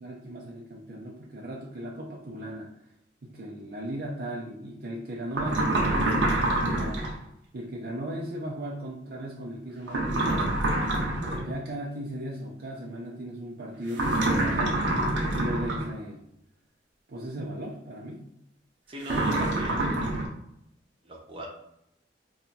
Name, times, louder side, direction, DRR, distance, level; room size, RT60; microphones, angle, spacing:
voice 1, 0.0-2.7 3.2-7.1 7.5-10.5 11.4-16.2 17.1-18.3, right 1 dB, 55° right, -2 dB, 0.5 m, -37 dB
sound 1, 5.3-7.1 9.9-11.5 13.9-15.9 19.0-20.3, right 1 dB, 90° right, 0.8 m, -26 dB
voice 2, 18.9-20.2 21.0-21.5, right 1 dB, 30° right, -2 dB, 0.8 m, -40 dB
2.7 x 2.2 x 4.0 m, 0.78 s
head